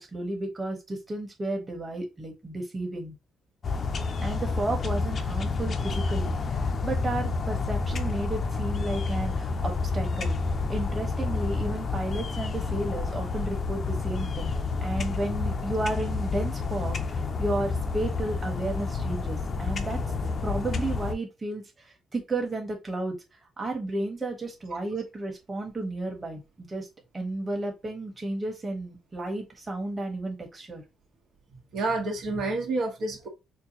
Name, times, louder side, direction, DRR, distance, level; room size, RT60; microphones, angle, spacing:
voice 1, 0.0-3.1 4.2-10.4 10.7-14.5 14.8-20.0 20.4-23.2 23.6-26.9 27.1-30.8, right 2 dB, 25° right, 1.3 m, -33 dB
sound 1, 3.6-21.1, left 4 dB, 45° left, 0.6 m, -29 dB
voice 2, 31.7-33.3, right 2 dB, 75° right, 1.3 m, -28 dB
4.4 x 2.3 x 3.0 m
cardioid pair, 90°, 0 cm